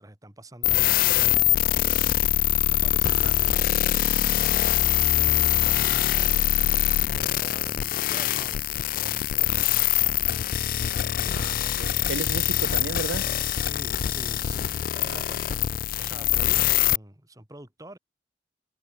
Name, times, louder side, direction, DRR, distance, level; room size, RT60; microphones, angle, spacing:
voice 1, 0.0-6.5 7.1-10.3 11.0-11.6 13.6-15.7 15.9-18.0, right 1 dB, 20° right, 2.6 m, -46 dB
sound 1, 0.6-17.0, left 12 dB, 50° left, 0.3 m, -23 dB
voice 2, 11.3-13.3 15.1-15.2, right 4 dB, 80° right, 0.5 m, -34 dB
head